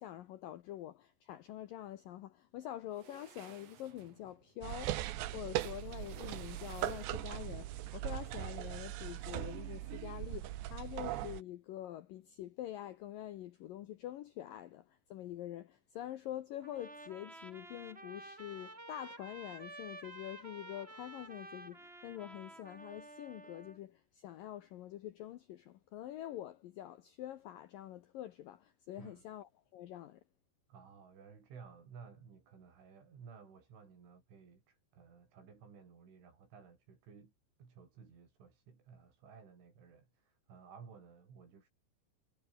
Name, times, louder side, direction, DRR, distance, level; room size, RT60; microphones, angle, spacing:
voice 1, 0.0-5.0 5.3-30.2, left 13 dB, 75° left, 2.0 m, -46 dB
sound 1, 2.9-7.5, right 9 dB, 50° right, 2.0 m, -57 dB
sound 2, 4.6-11.4, right 14 dB, 75° right, 3.3 m, -40 dB
Trumpet, 16.6-23.8, right 2 dB, 15° right, 4.8 m, -51 dB
voice 2, 30.7-37.3 37.6-41.7, right 6 dB, 90° right, 8.5 m, -56 dB
omnidirectional pair, 5.3 m